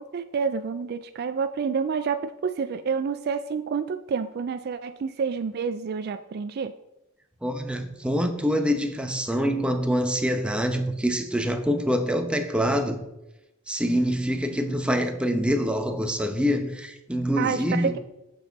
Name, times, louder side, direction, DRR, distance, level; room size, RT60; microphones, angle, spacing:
voice 1, 0.1-6.7 17.4-18.0, right 6 dB, 50° right, 0.3 m, -28 dB
voice 2, 7.4-13.0 13.7-17.9, equal, 5° right, 0.8 m, -25 dB
8.5 x 7.1 x 4.0 m
head